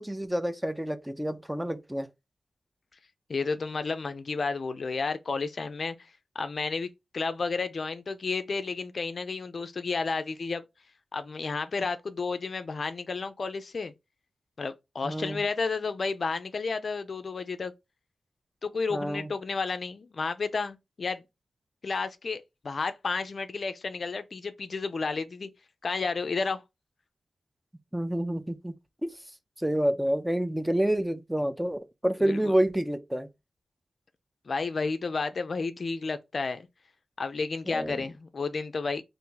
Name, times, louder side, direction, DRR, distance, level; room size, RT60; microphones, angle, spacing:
voice 1, 0.0-2.1 15.0-15.4 18.9-19.3 27.9-28.7 29.0-29.1 29.6-33.3 37.7-38.0, right 1 dB, 5° right, 0.4 m, -28 dB
voice 2, 3.3-5.9 6.4-10.6 11.1-13.9 14.6-17.7 18.6-21.2 21.8-25.5 25.8-26.6 32.3-32.5 34.5-36.7 37.2-39.0, left 4 dB, 55° left, 0.4 m, -31 dB
2.7 x 2.5 x 3.7 m
wide cardioid pair, 80°, 0 cm